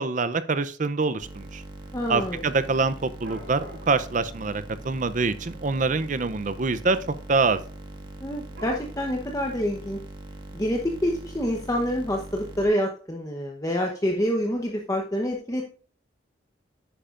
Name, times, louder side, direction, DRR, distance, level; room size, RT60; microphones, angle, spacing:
voice 1, 0.0-1.6 2.1-7.6, right 4 dB, 40° right, 14 dB, 0.5 m, -25 dB
sound 1, 1.2-12.7, right 2 dB, 25° right, 1.5 m, -42 dB
voice 2, 1.9-2.4 8.2-10.0 10.5-15.6, equal, 15° left, 1 dB, 0.9 m, -27 dB
Dog / Cat, 3.0-8.8, left 1 dB, 70° right, 2.9 m, -50 dB
10.0 x 8.7 x 2.5 m, 0.42 s
head